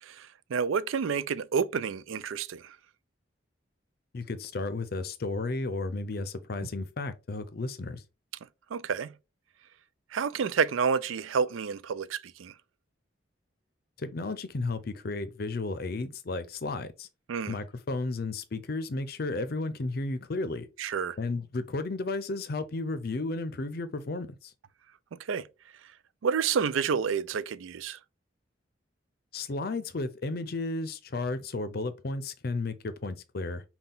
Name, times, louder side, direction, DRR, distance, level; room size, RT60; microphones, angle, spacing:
voice 1, 0.0-2.8 8.7-9.1 10.1-12.5 17.3-17.5 20.8-21.2 25.3-25.5 26.2-28.0, right 6 dB, 85° right, 0.4 m, -29 dB
voice 2, 4.1-8.0 14.0-17.1 17.5-20.7 21.2-24.5 29.3-33.6, left 3 dB, 50° left, 0.5 m, -33 dB
5.6 x 2.3 x 3.9 m
head